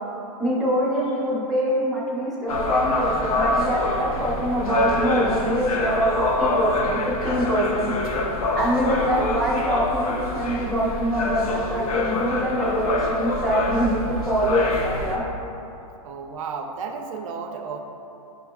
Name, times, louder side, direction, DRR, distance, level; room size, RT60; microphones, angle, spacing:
voice 1, 0.4-6.1 6.4-7.9 8.6-15.2, equal, ahead, -8 dB, 0.5 m, -24 dB
sound 1, 2.5-15.2, left 2 dB, 90° left, 0.6 m, -26 dB
voice 2, 8.7-9.4 16.0-17.8, right 5 dB, 70° right, 4 dB, 0.4 m, -33 dB
7.1 x 2.9 x 2.3 m, 2.8 s
supercardioid pair, 155°, 18 cm